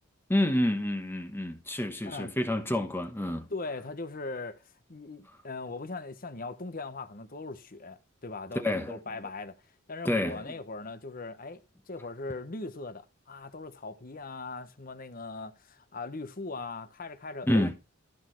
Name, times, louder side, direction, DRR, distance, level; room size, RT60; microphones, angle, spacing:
voice 1, 0.3-3.5 8.5-9.0 10.0-10.5 17.5-17.7, left 1 dB, 10° left, 1.0 m, -28 dB
voice 2, 3.5-4.6 4.9-9.6 9.9-17.7, left 3 dB, 40° left, 1.1 m, -39 dB
14.0 x 6.2 x 4.6 m
head